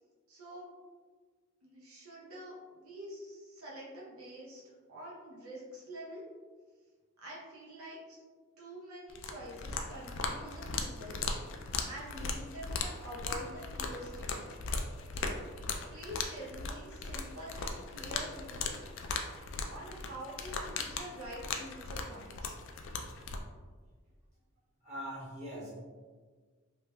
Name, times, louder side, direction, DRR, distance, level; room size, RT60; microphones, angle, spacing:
voice 1, 0.3-0.7 1.6-6.3 7.2-8.2 8.6-11.2 11.5-14.4 15.1-15.3 15.9-18.8 19.7-22.5, right 1 dB, 90° right, -5 dB, 0.7 m, -47 dB
sound 1, 9.1-23.4, left 4 dB, 60° left, 0.3 m, -38 dB
voice 2, 24.8-25.7, equal, 30° right, -10 dB, 1.3 m, -41 dB
3.3 x 2.8 x 2.2 m, 1.5 s
head